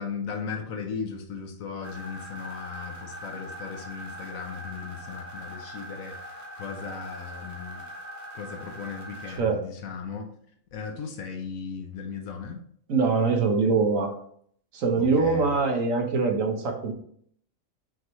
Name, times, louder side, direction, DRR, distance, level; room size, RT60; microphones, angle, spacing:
voice 1, 0.0-7.9 8.3-10.3 10.7-12.6 15.0-15.6, left 5 dB, 90° left, 3 dB, 1.3 m, -37 dB
sound 1, 1.8-9.4, equal, 15° right, 1.6 m, -41 dB
voice 2, 12.9-14.1 14.7-16.9, right 4 dB, 75° right, 3 dB, 1.5 m, -23 dB
6.4 x 4.8 x 3.1 m, 0.63 s
omnidirectional pair, 1.4 m